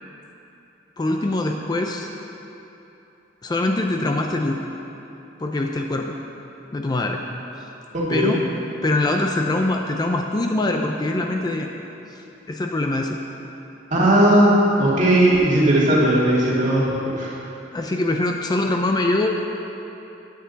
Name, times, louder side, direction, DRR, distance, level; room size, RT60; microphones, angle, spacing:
voice 1, 1.0-2.1 3.4-4.6 5.4-6.1 6.7-7.2 8.1-8.4 8.8-11.7 12.5-13.2 17.7-19.3, left 2 dB, 20° left, 2 dB, 0.4 m, -23 dB
voice 2, 7.9-8.4 13.9-16.9 17.1-17.3, right 1 dB, 45° right, -7 dB, 2.1 m, -17 dB
8.9 x 8.2 x 4.0 m, 3.0 s
head